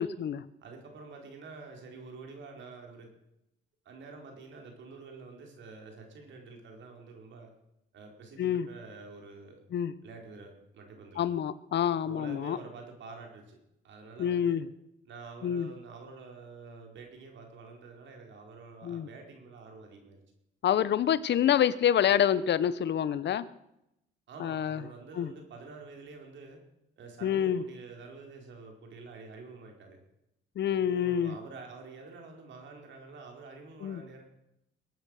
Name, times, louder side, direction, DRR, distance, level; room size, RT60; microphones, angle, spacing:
voice 1, 0.0-0.4 8.4-8.7 9.7-9.9 11.2-12.6 14.2-14.7 15.4-15.7 18.8-19.1 20.6-23.5 24.4-24.8 25.2-25.3 27.2-27.6 30.6-31.4 33.8-34.0, left 9 dB, 60° left, 16 dB, 0.9 m, -27 dB
voice 2, 0.6-3.1 3.8-7.5 7.9-9.6 10.0-11.3 12.0-13.6 13.8-14.6 15.0-20.2 24.3-26.6 27.0-30.0 30.7-34.2, right 4 dB, 70° right, 3 dB, 4.5 m, -48 dB
21.5 x 9.2 x 6.5 m, 0.84 s
cardioid pair, 90°, 20 cm